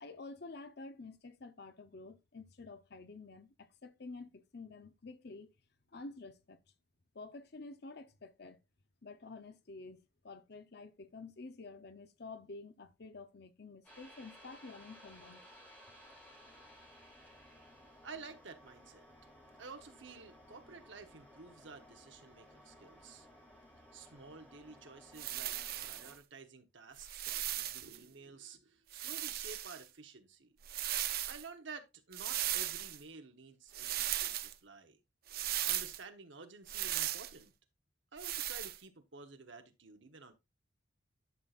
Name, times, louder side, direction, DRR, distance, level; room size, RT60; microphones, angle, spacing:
voice 1, 0.0-5.5 5.9-6.6 7.1-8.6 9.0-15.4, left 3 dB, 55° left, 0.7 m, -50 dB
sound 1, 13.8-26.2, equal, 10° left, 3.6 m, -58 dB
voice 2, 18.0-19.0 19.6-23.3 23.9-30.5 31.3-35.0 35.6-37.5 38.1-40.3, right 4 dB, 65° right, 1.2 m, -52 dB
sound 2, 25.2-26.1 27.0-28.0 28.9-29.8 30.6-31.4 32.1-33.0 33.7-34.5 35.3-36.0 36.7-37.3 38.2-38.8, right 13 dB, 50° right, 0.5 m, -37 dB
11.0 x 5.8 x 2.5 m
head